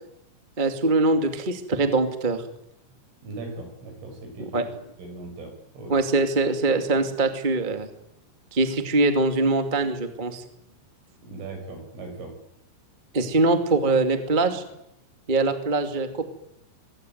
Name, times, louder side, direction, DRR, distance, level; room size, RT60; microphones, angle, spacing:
voice 1, 0.6-2.4 4.4-4.7 5.9-7.9 8.5-10.4 13.1-14.6 15.3-16.2, right 3 dB, 30° right, 7 dB, 0.8 m, -23 dB
voice 2, 3.2-4.6 5.0-5.9 11.2-12.3, right 3 dB, 75° right, 4 dB, 9.7 m, -38 dB
26.5 x 23.0 x 9.4 m, 0.82 s
omnidirectional pair, 5.8 m